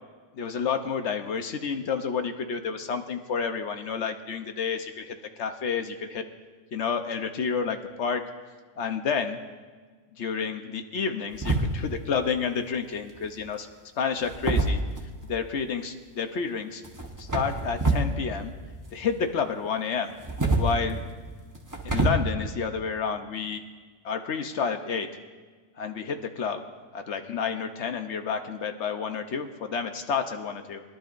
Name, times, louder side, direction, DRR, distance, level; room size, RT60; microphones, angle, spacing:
voice 1, 0.4-6.2 6.7-8.2 8.8-9.4 10.2-13.7 14.0-14.8 15.3-16.8 17.2-18.5 18.9-20.1 20.6-21.0 21.8-23.6 24.0-25.1 25.8-26.6 26.9-30.8, left 6 dB, 65° left, 7 dB, 1.1 m, -30 dB
sound 1, 11.3-12.0 13.1-13.5 14.2-15.3 16.8-18.1 18.4-19.3 20.1-22.1, right 2 dB, 15° right, 1.1 m, -27 dB
21.5 x 11.5 x 2.5 m, 1.5 s
omnidirectional pair, 1.3 m